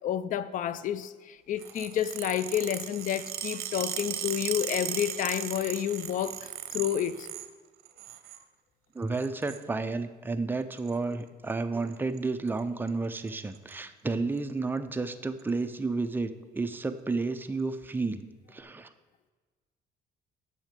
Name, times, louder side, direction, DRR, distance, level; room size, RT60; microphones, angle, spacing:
voice 1, 0.0-7.3, left 10 dB, 50° left, 0.4 m, -30 dB
sound 1, 1.6-7.5 7.8-8.4 9.1-9.6 10.7-10.9 11.9-12.2 12.5-12.6 12.9-13.0 13.3-13.7 14.4-14.5 15.4-15.5, right 11 dB, 70° right, 0.7 m, -37 dB
voice 2, 8.9-18.9, right 3 dB, 10° right, 0.5 m, -31 dB
9.0 x 6.6 x 5.2 m
cardioid pair, 110°, 17 cm